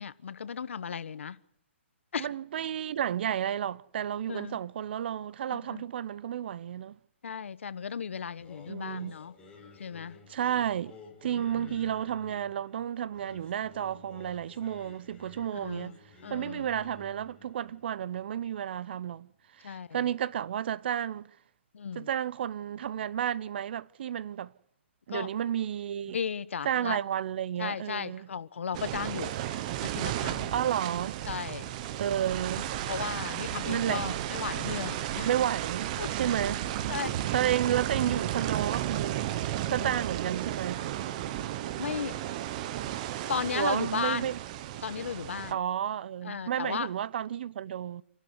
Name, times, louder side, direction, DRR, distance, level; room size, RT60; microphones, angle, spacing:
voice 1, 0.0-1.4 2.1-2.3 4.3-4.6 5.5-5.8 7.2-9.3 9.8-10.2 11.3-11.8 15.5-15.9 16.2-16.7 19.6-20.1 21.7-22.1 25.1-25.3 26.1-27.0 27.6-29.3 29.8-30.5 31.2-31.7 32.9-35.3 36.0-36.1 36.9-37.3 37.9-38.1 39.7-40.0 41.8-42.2 43.3-44.3 44.8-45.6 46.2-46.9, left 7 dB, 80° left, 1.2 m, -35 dB
voice 2, 2.2-7.0 8.7-9.2 10.3-16.0 16.3-19.3 19.6-21.3 21.9-24.5 25.1-26.2 26.6-28.3 30.5-31.2 32.0-32.6 33.7-34.2 35.2-36.6 37.3-39.3 39.7-40.8 43.5-44.4 45.5-48.0, right 10 dB, 55° right, 0.8 m, -32 dB
Singing, 8.4-19.5, left 4 dB, 10° left, 4.1 m, -54 dB
sound 1, 28.7-45.5, right 12 dB, 35° right, 1.2 m, -33 dB
28.0 x 12.0 x 8.2 m
hypercardioid pair, 155°, 7 cm